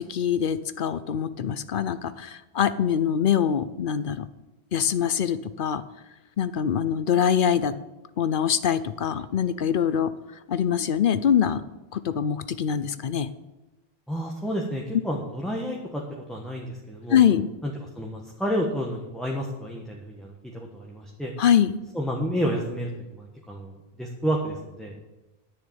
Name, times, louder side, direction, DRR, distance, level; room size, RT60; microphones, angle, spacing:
voice 1, 0.0-4.2 4.7-5.8 6.4-7.7 8.2-10.1 10.5-11.6 11.9-13.3 17.1-17.5 21.4-21.7, left 8 dB, 60° left, 14 dB, 0.7 m, -23 dB
voice 2, 14.1-16.0 16.3-17.2 17.6-21.3 21.9-25.0, equal, ahead, -1 dB, 1.3 m, -30 dB
10.5 x 6.8 x 8.6 m, 1.0 s
omnidirectional pair, 1.1 m